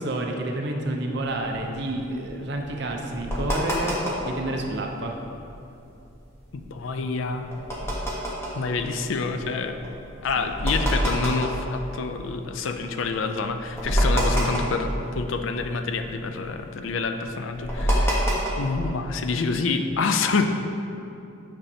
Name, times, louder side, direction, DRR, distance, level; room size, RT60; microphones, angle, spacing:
voice 1, 0.0-5.2 10.3-10.5, right 1 dB, 55° right, 2 dB, 0.6 m, -29 dB
sound 1, 1.3-4.5 4.9-5.0 5.2-5.5 6.0-12.6 13.1-13.2 13.4-15.6 15.8-18.9, equal, 15° left, 1.0 m, -27 dB
voice 2, 6.5-7.5 8.5-9.8 10.2-18.2 18.6-20.4, left 4 dB, 75° left, 7 dB, 0.4 m, -27 dB
8.7 x 5.4 x 2.8 m, 2.8 s
head